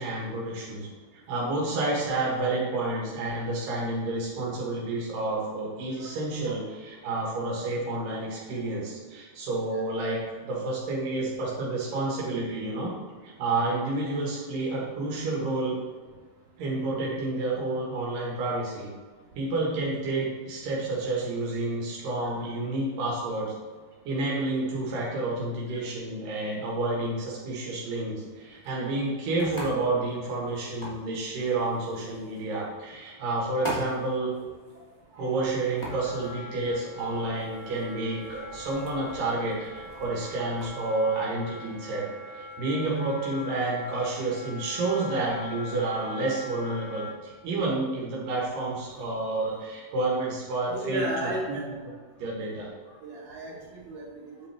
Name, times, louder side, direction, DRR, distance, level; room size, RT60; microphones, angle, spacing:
voice 1, 0.0-12.9 13.2-15.8 16.6-18.9 19.4-23.5 24.1-34.4 35.2-42.1 42.3-51.6 52.2-52.7, right 2 dB, 85° right, -4 dB, 3.2 m, -30 dB
sound 1, 28.2-40.7, equal, 10° left, 2.0 m, -44 dB
Wind instrument woodwind instrument, 35.9-47.2, left 2 dB, 75° left, 0.4 m, -42 dB
voice 2, 50.7-51.6 53.0-54.5, right 1 dB, 50° right, -7 dB, 3.9 m, -35 dB
9.2 x 8.8 x 3.4 m, 1.5 s
omnidirectional pair, 3.8 m